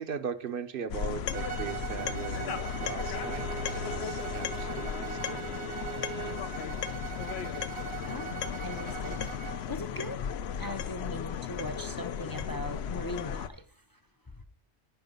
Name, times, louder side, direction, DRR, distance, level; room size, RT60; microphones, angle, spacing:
voice 1, 0.0-5.5, right 6 dB, 55° right, 0.9 m, -39 dB
sound 1, 0.9-13.5, left 8 dB, 70° left, 0.8 m, -35 dB
Bowed string instrument, 1.3-9.6, right 12 dB, 70° right, 1.3 m, -41 dB
Bowed string instrument 2, 2.4-6.5, right 7 dB, 5° right, 0.7 m, -43 dB
voice 2, 8.1-9.2 9.7-10.2 10.6-13.5, left 1 dB, 25° left, 0.5 m, -39 dB
9.3 x 5.8 x 5.2 m
omnidirectional pair, 1.1 m